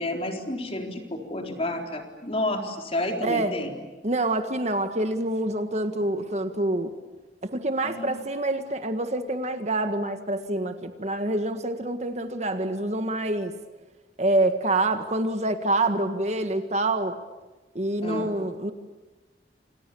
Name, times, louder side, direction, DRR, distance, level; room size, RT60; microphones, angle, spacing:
voice 1, 0.0-3.7 7.8-8.1 18.0-18.3, left 1 dB, 35° left, 3 dB, 4.0 m, -30 dB
voice 2, 3.2-3.6 4.0-6.9 7.4-13.5 14.2-17.2 17.8-18.7, right 2 dB, 40° right, 7 dB, 1.7 m, -26 dB
29.5 x 28.5 x 7.1 m, 1.2 s
head